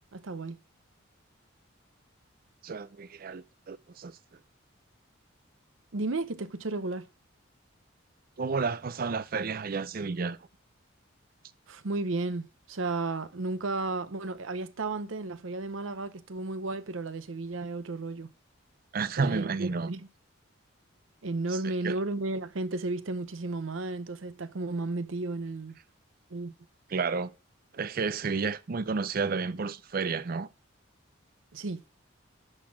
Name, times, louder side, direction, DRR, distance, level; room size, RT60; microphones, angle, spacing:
voice 1, 0.1-0.6 5.9-7.1 11.7-18.3 19.2-20.1 21.2-25.8 26.3-26.5 31.5-31.8, right 3 dB, 70° right, 0.8 m, -33 dB
voice 2, 2.6-4.1 8.4-10.4 18.9-19.9 21.5-21.6 21.8-21.9 26.9-27.3 27.7-30.5, right 4 dB, 45° right, 0.5 m, -31 dB
11.5 x 4.3 x 6.1 m
head